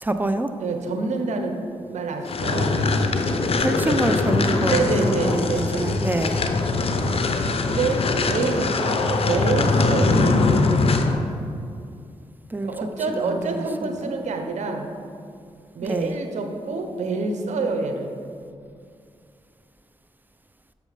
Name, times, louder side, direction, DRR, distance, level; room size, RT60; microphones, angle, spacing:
voice 1, 0.0-0.5 3.6-6.4 12.5-14.2 15.8-16.1, right 1 dB, 15° right, 8 dB, 0.6 m, -27 dB
voice 2, 0.6-2.8 3.8-4.0 4.7-6.1 7.7-10.5 12.6-14.9 15.7-18.2, right 3 dB, 80° right, 5 dB, 0.8 m, -27 dB
sound 1, 2.3-11.2, left 3 dB, 55° left, 0.7 m, -22 dB
6.5 x 6.2 x 5.0 m, 2.4 s
cardioid pair, 50°, 12 cm